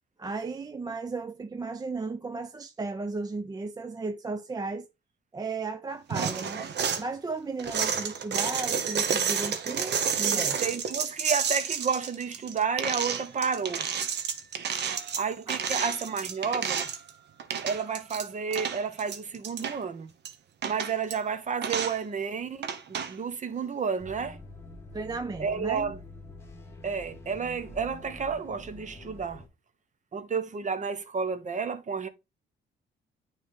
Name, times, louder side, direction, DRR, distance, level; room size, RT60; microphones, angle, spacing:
voice 1, 0.2-4.9 5.3-10.6 15.5-15.6 24.9-25.9, right 3 dB, 20° right, 0.4 m, -35 dB
sound 1, 6.1-7.0 7.6-17.1 17.4-18.3 18.5-19.8 20.2-20.3 20.6-21.1 21.6-22.0 22.6-23.1, right 7 dB, 60° right, 0.9 m, -30 dB
voice 2, 10.3-13.9 15.1-16.9 17.6-20.1 20.6-24.4 25.4-26.0 26.8-29.4 30.1-32.1, right 6 dB, 40° right, 0.9 m, -31 dB
sound 2, 24.0-29.5, left 2 dB, 10° left, 1.8 m, -46 dB
9.3 x 3.3 x 3.6 m
cardioid pair, 90°, 20 cm